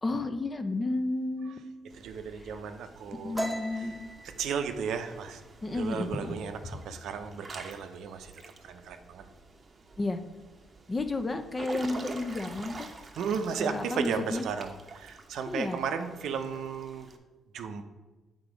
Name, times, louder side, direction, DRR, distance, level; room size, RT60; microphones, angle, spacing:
voice 1, 0.0-1.7 3.2-4.0 5.6-6.4 10.0-10.2 10.9-12.9 13.6-14.4 15.5-15.8, left 2 dB, 25° left, 8 dB, 0.6 m, -32 dB
Water / Splash splatter / Drip, 1.9-17.2, right 3 dB, 35° right, 0.8 m, -48 dB
voice 2, 2.0-3.4 4.2-5.4 5.7-8.3 8.6-9.3 13.2-17.1 17.5-17.8, right 6 dB, 75° right, 7 dB, 0.6 m, -34 dB
sound 1, 3.3-6.8 7.1-7.4 7.8-8.3 8.6-9.4, right 1 dB, 5° right, 1.0 m, -39 dB
8.1 x 3.8 x 5.0 m, 1.2 s
cardioid pair, 90°, 0 cm